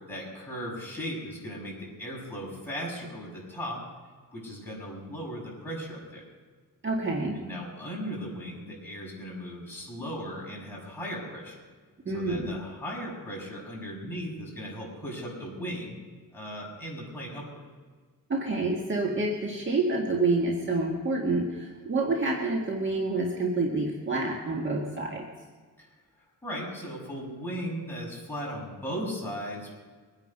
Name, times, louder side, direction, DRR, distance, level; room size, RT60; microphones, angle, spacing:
voice 1, 0.1-3.8 4.3-6.2 7.3-11.6 12.1-16.0 16.3-17.5 25.8-25.9 26.4-29.8, equal, 5° left, -4 dB, 6.5 m, -37 dB
voice 2, 6.8-7.4 12.1-12.5 18.3-25.2, right 2 dB, 35° right, -1 dB, 1.8 m, -28 dB
23.5 x 9.8 x 5.4 m, 1.5 s
wide cardioid pair, 150°, 34 cm